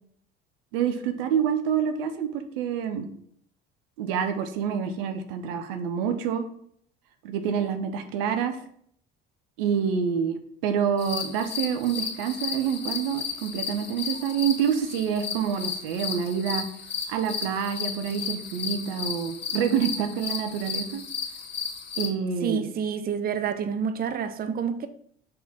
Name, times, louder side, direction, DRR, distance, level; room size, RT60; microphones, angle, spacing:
voice 1, 0.7-3.1 4.0-6.4 7.2-8.6 9.6-10.4 10.6-16.7 17.1-21.0 22.0-22.6, right 7 dB, 75° right, 0.8 m, -27 dB
sound 1, 11.0-22.1, left 6 dB, 35° left, 1.6 m, -34 dB
voice 2, 22.4-24.9, right 7 dB, 30° right, 0.6 m, -28 dB
6.7 x 3.8 x 4.2 m
hypercardioid pair, 65°, 29 cm